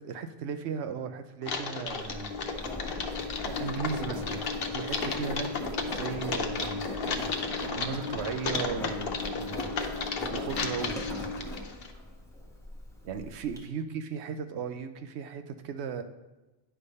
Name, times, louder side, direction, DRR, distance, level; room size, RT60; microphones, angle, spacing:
voice 1, 0.0-2.3 3.4-4.4 4.7-5.5 5.8-9.7 10.3-11.0 13.0-16.0, right 6 dB, 80° right, 8 dB, 0.9 m, -36 dB
Typing, 1.4-11.9, left 4 dB, 60° left, 0.9 m, -35 dB
Engine, 1.9-13.6, left 2 dB, 5° left, 0.9 m, -37 dB
9.7 x 3.4 x 5.4 m, 1.1 s
omnidirectional pair, 1.1 m